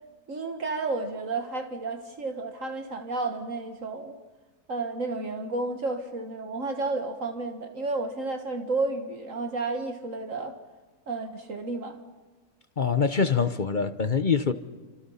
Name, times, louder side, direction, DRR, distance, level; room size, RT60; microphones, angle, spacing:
voice 1, 0.3-4.2 4.7-10.6 11.1-12.0, right 3 dB, 60° right, 6 dB, 1.7 m, -31 dB
voice 2, 12.8-14.5, left 5 dB, 40° left, 11 dB, 0.8 m, -24 dB
29.5 x 26.0 x 5.6 m, 1.3 s
omnidirectional pair, 1.6 m